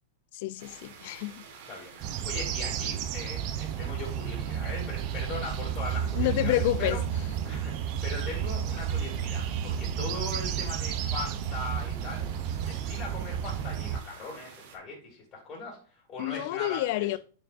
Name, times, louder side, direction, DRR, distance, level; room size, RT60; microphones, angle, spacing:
voice 1, 0.3-1.4 6.2-7.0 16.2-17.2, left 15 dB, 50° left, 0.3 m, -29 dB
sound 1, 0.6-14.8, right 6 dB, 55° right, 1.4 m, -50 dB
voice 2, 1.7-7.0 7.4-12.3 12.6-17.2, left 3 dB, 25° left, 2.2 m, -40 dB
sound 2, 2.0-14.0, right 9 dB, 35° right, 0.5 m, -32 dB
8.6 x 4.7 x 2.5 m
supercardioid pair, 160°, 0 cm